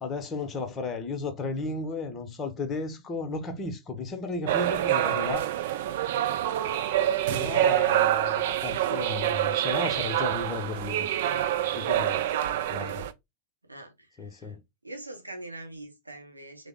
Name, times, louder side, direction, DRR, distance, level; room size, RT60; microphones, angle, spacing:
voice 1, 0.0-5.5 7.3-11.1 11.7-12.3 12.7-13.0 14.2-14.6, left 3 dB, 25° left, 0.7 m, -34 dB
sound 1, 4.5-13.1, right 12 dB, 55° right, 0.3 m, -26 dB
voice 2, 12.4-13.1 13.6-14.6 14.8-16.7, right 2 dB, 85° right, 0.7 m, -44 dB
3.4 x 2.0 x 3.5 m
figure-of-eight pair, 90°, 0 cm